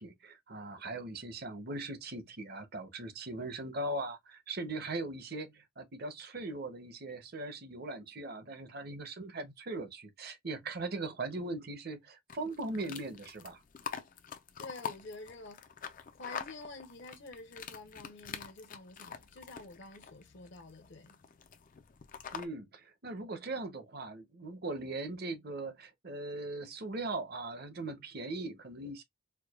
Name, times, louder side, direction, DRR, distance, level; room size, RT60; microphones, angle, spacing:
voice 1, 0.0-13.6 22.3-29.0, right 2 dB, 45° right, 0.7 m, -40 dB
sound 1, 12.3-22.5, left 7 dB, 40° left, 0.4 m, -46 dB
voice 2, 14.6-15.7 16.1-21.2, left 2 dB, 55° left, 0.8 m, -49 dB
4.6 x 2.2 x 2.3 m
head